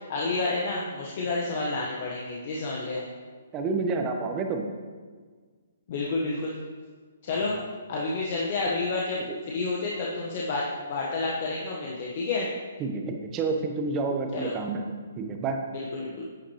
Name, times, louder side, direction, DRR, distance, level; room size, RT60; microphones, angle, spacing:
voice 1, 0.1-3.1 5.9-6.5 7.2-7.5 7.9-9.2 9.5-12.5 14.3-14.5 15.7-16.2, left 3 dB, 45° left, -3 dB, 1.4 m, -29 dB
voice 2, 3.5-4.7 7.4-7.7 12.8-14.8 15.2-15.6, right 4 dB, 25° right, 4 dB, 1.1 m, -29 dB
11.5 x 8.6 x 3.2 m, 1.5 s
figure-of-eight pair, 125°, 0 cm